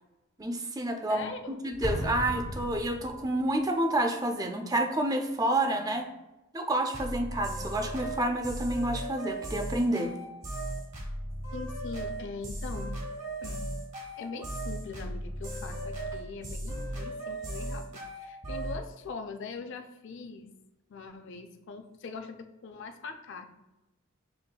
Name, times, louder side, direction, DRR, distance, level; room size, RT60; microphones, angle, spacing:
voice 1, 0.4-1.3 1.6-6.1 6.5-10.1, right 1 dB, 20° right, 5 dB, 0.4 m, -29 dB
voice 2, 1.1-1.6 11.5-13.0 13.4-13.7 14.2-20.5 20.9-23.5, left 4 dB, 60° left, 7 dB, 0.4 m, -42 dB
Explosion, 1.8-3.5, left 1 dB, 85° left, 1.2 m, -35 dB
sound 1, 6.9-18.8, right 1 dB, 35° right, 1.1 m, -36 dB
6.9 x 3.1 x 2.2 m, 0.98 s
head